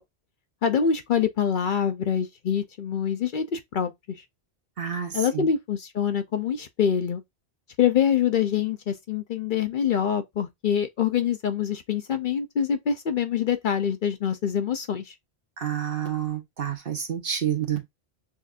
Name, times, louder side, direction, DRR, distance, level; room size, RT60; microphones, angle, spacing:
voice 1, 0.6-3.9 5.1-7.2 7.8-15.0, left 8 dB, 60° left, 0.7 m, -25 dB
voice 2, 4.8-5.5 15.6-17.8, right 9 dB, 60° right, 1.3 m, -29 dB
6.2 x 2.5 x 2.4 m
omnidirectional pair, 1.1 m